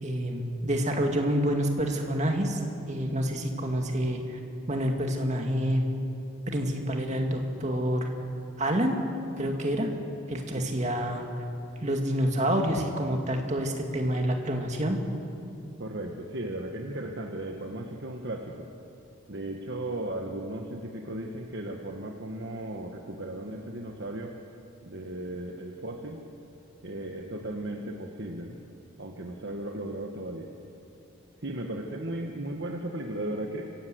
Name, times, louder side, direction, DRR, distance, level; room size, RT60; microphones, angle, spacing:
voice 1, 0.0-2.6 2.9-4.4 4.7-5.8 6.5-8.1 8.6-8.9 9.4-9.9 10.3-11.4 11.8-15.0, equal, 35° right, 3 dB, 2.3 m, -28 dB
voice 2, 15.8-18.7 19.3-24.3 24.8-26.2 26.8-28.6 29.0-30.5 31.4-33.7, right 1 dB, 60° right, 2 dB, 1.4 m, -36 dB
25.5 x 16.5 x 7.9 m, 2.7 s
head